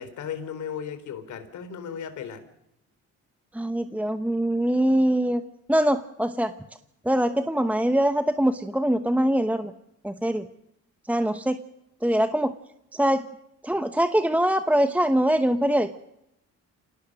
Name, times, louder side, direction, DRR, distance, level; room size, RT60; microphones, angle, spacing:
voice 1, 0.0-2.4, left 7 dB, 75° left, 10 dB, 3.6 m, -35 dB
voice 2, 3.5-5.4 5.7-6.5 7.0-9.7 10.0-10.4 11.1-11.6 12.0-12.5 13.0-13.2 13.6-15.9, right 1 dB, 5° right, 10 dB, 1.0 m, -23 dB
26.5 x 18.5 x 6.6 m, 0.81 s
cardioid pair, 90°, 30 cm